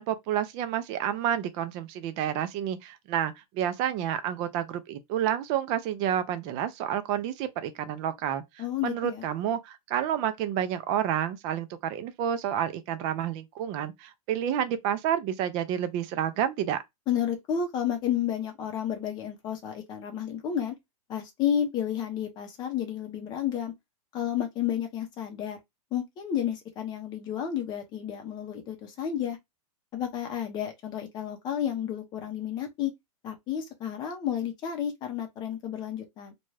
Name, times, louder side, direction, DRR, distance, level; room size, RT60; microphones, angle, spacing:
voice 1, 0.0-16.8, right 10 dB, 25° right, 0.3 m, -29 dB
voice 2, 8.6-9.3 17.1-20.7 21.1-23.7 24.1-25.6 25.9-29.4 29.9-32.9 33.2-36.3, left 9 dB, 20° left, 0.6 m, -31 dB
2.6 x 2.2 x 3.1 m
hypercardioid pair, 155°, 20 cm